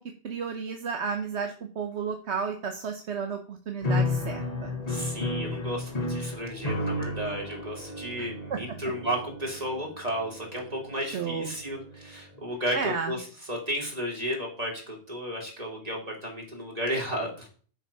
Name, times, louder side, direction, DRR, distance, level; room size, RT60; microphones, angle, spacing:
voice 1, 0.2-4.7 8.2-8.8 11.1-11.6 12.7-13.1, right 6 dB, 70° right, 5 dB, 1.2 m, -33 dB
sound 1, 3.8-12.1, left 2 dB, 35° left, 1.2 m, -33 dB
voice 2, 4.9-17.5, equal, 30° right, -1 dB, 3.0 m, -33 dB
10.5 x 5.2 x 5.6 m, 0.43 s
omnidirectional pair, 1.2 m